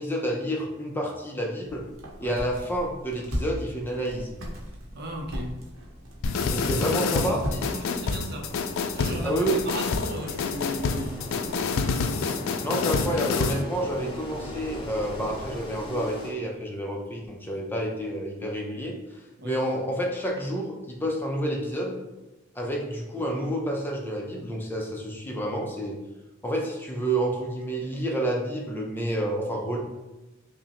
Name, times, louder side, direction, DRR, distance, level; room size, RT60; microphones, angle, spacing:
voice 1, 0.0-1.9 2.2-4.4 6.5-7.6 9.2-9.6 12.6-22.0 22.6-26.0 26.4-29.8, right 1 dB, 10° left, -1 dB, 0.4 m, -29 dB
sound 1, 1.6-12.2, equal, 85° right, 0.9 m, -39 dB
voice 2, 4.9-5.7 6.3-7.4 7.7-8.6 8.9-11.9 19.4-19.7, right 1 dB, 55° right, 2 dB, 0.6 m, -37 dB
sound 2, 6.2-13.6, left 5 dB, 80° left, 0.3 m, -28 dB
Engine, 7.9-16.3, left 1 dB, 25° left, 0.8 m, -39 dB
5.2 x 2.1 x 2.8 m, 1.0 s
head